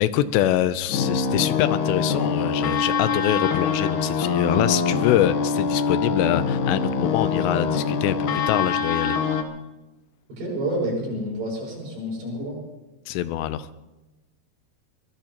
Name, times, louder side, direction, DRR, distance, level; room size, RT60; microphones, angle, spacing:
voice 1, 0.0-9.2 13.1-13.7, left 12 dB, 85° left, 13 dB, 2.9 m, -24 dB
sound 1, 0.9-9.4, left 5 dB, 65° left, 2.1 m, -24 dB
voice 2, 10.3-12.6, right 1 dB, 70° right, -3 dB, 8.8 m, -29 dB
23.5 x 21.0 x 3.0 m, 1.1 s
omnidirectional pair, 4.9 m